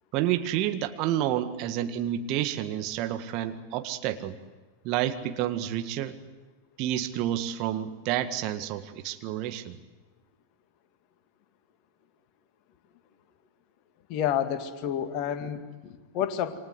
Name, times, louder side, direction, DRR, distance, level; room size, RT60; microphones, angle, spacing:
voice 1, 0.1-4.4 4.8-6.2 6.8-9.8, right 12 dB, 40° right, 8 dB, 1.8 m, -29 dB
voice 2, 14.1-16.6, left 9 dB, 40° left, 8 dB, 2.1 m, -30 dB
28.5 x 25.0 x 8.1 m, 1.3 s
figure-of-eight pair, 90°, 0 cm